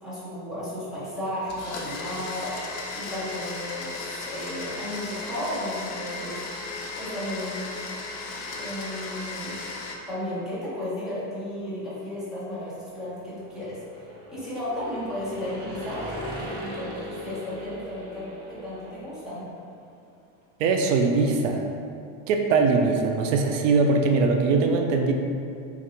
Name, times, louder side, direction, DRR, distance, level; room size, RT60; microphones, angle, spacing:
voice 1, 0.0-2.5 2.9-6.4 7.0-7.8 8.6-9.6 10.1-16.0 16.6-19.5, left 1 dB, ahead, -11 dB, 0.9 m, -34 dB
Domestic sounds home sounds, 1.5-10.0, left 3 dB, 50° left, 0.6 m, -36 dB
sound 1, 12.5-19.4, equal, 25° right, 0.4 m, -39 dB
voice 2, 20.6-21.6 22.3-25.1, right 4 dB, 85° right, 3 dB, 0.6 m, -21 dB
5.8 x 2.6 x 2.9 m, 2.5 s
cardioid pair, 170°, 37 cm